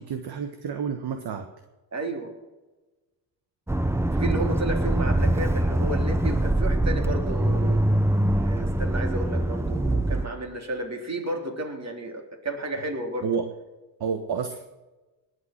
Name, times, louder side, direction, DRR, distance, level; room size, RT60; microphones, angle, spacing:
voice 1, 0.0-1.5 13.2-13.4 14.0-14.8, right 6 dB, 50° right, 7 dB, 1.5 m, -30 dB
voice 2, 1.9-2.3 4.1-7.8 8.4-13.3, right 1 dB, 35° right, 3 dB, 3.7 m, -32 dB
Accelerating revving vroom, 3.7-10.3, right 1 dB, 5° right, 0.8 m, -23 dB
19.5 x 8.4 x 5.9 m, 1.2 s
hypercardioid pair, 55°, 49 cm